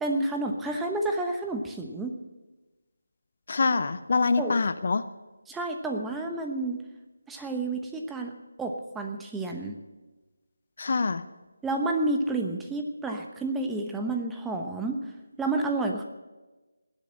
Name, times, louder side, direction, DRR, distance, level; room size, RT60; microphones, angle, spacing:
voice 1, 0.0-2.2 4.4-4.6 5.5-6.8 7.3-9.8 11.6-15.0 15.4-16.0, right 2 dB, 5° right, 2 dB, 1.0 m, -30 dB
voice 2, 3.5-5.0 10.8-11.2, left 4 dB, 50° left, 13 dB, 0.6 m, -25 dB
19.5 x 7.5 x 8.5 m, 1.2 s
figure-of-eight pair, 155°, 0 cm